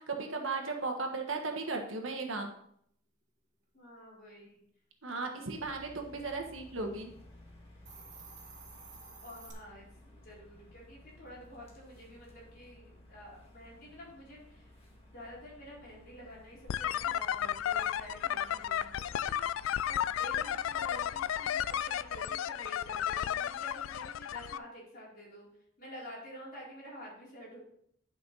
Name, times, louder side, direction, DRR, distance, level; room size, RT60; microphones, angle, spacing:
voice 1, 0.0-2.5 5.0-7.1, right 3 dB, 75° right, 3 dB, 1.5 m, -36 dB
voice 2, 3.7-4.6 9.2-9.9 10.2-14.7 15.1-25.5 25.8-27.6, equal, 45° left, -5 dB, 4.2 m, -49 dB
sound 1, 5.6-22.2, left 1 dB, 30° left, 2.0 m, -57 dB
Hiss, 7.7-9.5, right 5 dB, 40° right, 2.0 m, -51 dB
sound 2, 16.7-24.6, left 10 dB, 80° left, 0.3 m, -33 dB
11.0 x 5.7 x 4.1 m, 0.68 s
head